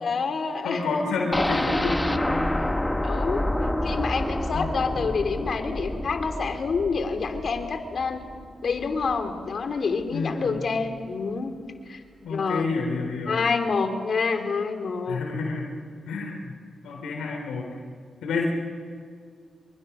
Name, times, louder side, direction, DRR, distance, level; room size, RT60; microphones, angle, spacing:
voice 1, 0.0-0.9 3.0-8.2 8.6-11.5 11.9-12.7 13.3-15.2, left 4 dB, 60° left, 7 dB, 2.7 m, -27 dB
voice 2, 0.6-2.5 4.5-5.1 10.1-10.6 12.2-13.4 15.1-15.7 16.1-16.5 16.8-17.7 18.2-18.5, left 4 dB, 90° left, 0 dB, 3.9 m, -29 dB
sound 1, 1.3-9.2 9.5-9.6 10.0-10.1, left 1 dB, 10° left, 1.4 m, -28 dB
26.0 x 24.0 x 6.2 m, 2.1 s
cardioid pair, 60°, 0 cm